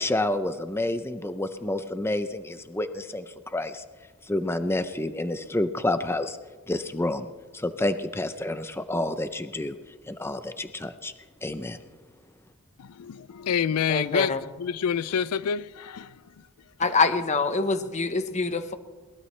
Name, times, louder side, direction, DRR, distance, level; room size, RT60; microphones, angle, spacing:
voice 1, 0.0-3.8 4.3-6.4 6.7-7.3 7.5-9.8 10.1-11.1 11.4-11.8, left 1 dB, 10° left, 0.5 m, -29 dB
voice 2, 12.8-14.3 14.6-16.1, left 7 dB, 85° left, 0.4 m, -27 dB
voice 3, 13.9-14.4 16.8-18.7, left 4 dB, 30° left, 1.0 m, -25 dB
22.0 x 19.5 x 3.2 m
head